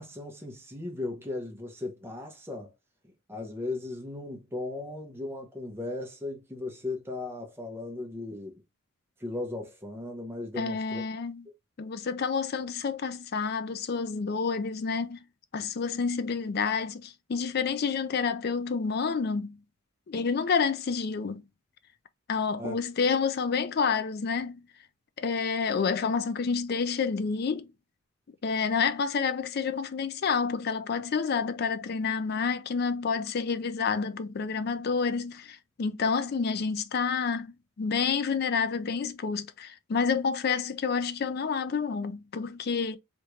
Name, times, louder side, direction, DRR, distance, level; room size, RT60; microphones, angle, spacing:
voice 1, 0.0-2.7 3.0-8.6 9.2-11.0 22.6-22.8, left 2 dB, 10° right, 0.8 m, -37 dB
voice 2, 10.6-11.4 11.8-15.2 15.5-19.6 20.1-21.4 22.3-24.6 25.2-27.7 28.4-43.0, left 5 dB, 45° left, 0.4 m, -29 dB
3.4 x 2.6 x 3.1 m
head